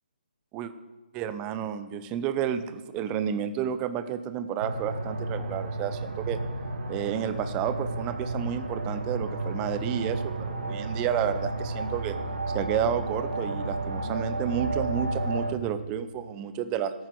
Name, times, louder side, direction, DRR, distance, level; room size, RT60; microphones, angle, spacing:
voice 1, 1.1-6.4 6.9-12.2 12.5-16.9, right 9 dB, 15° right, 11 dB, 0.5 m, -31 dB
sound 1, 4.6-15.5, right 2 dB, 60° right, 2.0 m, -32 dB
17.5 x 9.2 x 4.7 m, 1.2 s
figure-of-eight pair, 155°, 5 cm